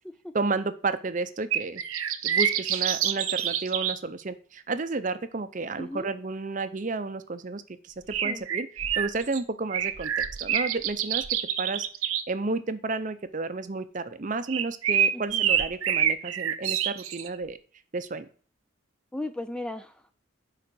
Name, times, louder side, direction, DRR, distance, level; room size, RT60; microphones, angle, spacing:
voice 1, 0.3-1.8 2.2-8.7 9.0-10.1 10.4-11.9 12.3-17.6 17.9-18.3, right 3 dB, 40° right, 12 dB, 0.6 m, -32 dB
sound 1, 1.5-4.0 8.1-9.4 9.7-12.2 14.5-17.3, right 9 dB, 90° right, 0.7 m, -27 dB
voice 2, 5.8-6.1 8.2-8.5 15.1-15.5 19.1-20.1, left 1 dB, 5° left, 9 dB, 0.3 m, -36 dB
9.4 x 4.9 x 6.1 m, 0.42 s
head